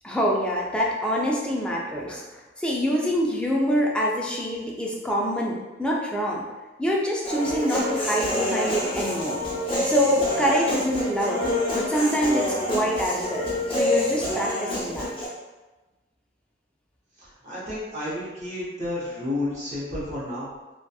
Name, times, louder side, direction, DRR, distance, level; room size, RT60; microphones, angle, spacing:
voice 1, 0.0-6.4 6.8-9.4 9.8-13.5 13.8-15.1, equal, 5° left, -3 dB, 0.3 m, -25 dB
Human voice, 7.2-15.3, left 1 dB, 30° left, 0.8 m, -27 dB
voice 2, 17.2-20.5, left 1 dB, 40° right, -8 dB, 0.7 m, -31 dB
2.7 x 2.2 x 2.3 m, 1.1 s
head